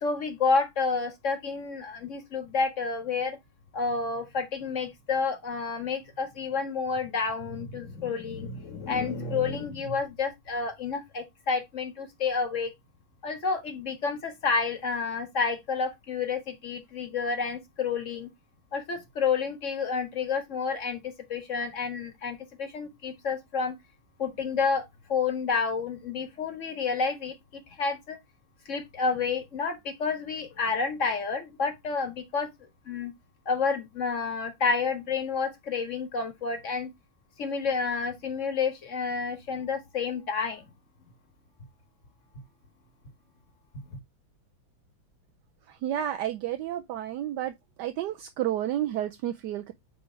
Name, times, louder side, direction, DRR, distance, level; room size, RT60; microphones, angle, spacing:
voice 1, 0.0-3.4 3.7-12.7 13.2-18.3 18.7-23.8 24.2-28.2 28.7-32.5 32.9-33.1 33.5-36.9 37.4-40.6 43.9-44.0, left 5 dB, 40° left, 1.7 m, -30 dB
voice 2, 45.7-47.5 47.8-49.7, right 12 dB, 75° right, 1.1 m, -31 dB
8.7 x 3.2 x 4.5 m
omnidirectional pair, 2.1 m